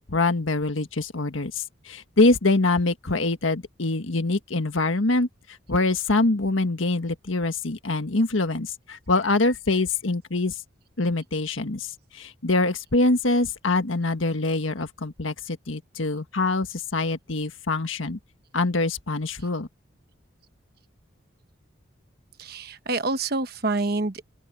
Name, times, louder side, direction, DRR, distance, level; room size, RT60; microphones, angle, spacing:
voice 1, 0.1-5.3 5.7-10.5 11.0-18.2 18.5-19.7, left 2 dB, 80° left, 1.6 m, -24 dB
voice 2, 22.4-24.2, right 3 dB, 50° right, 1.2 m, -27 dB
open air
head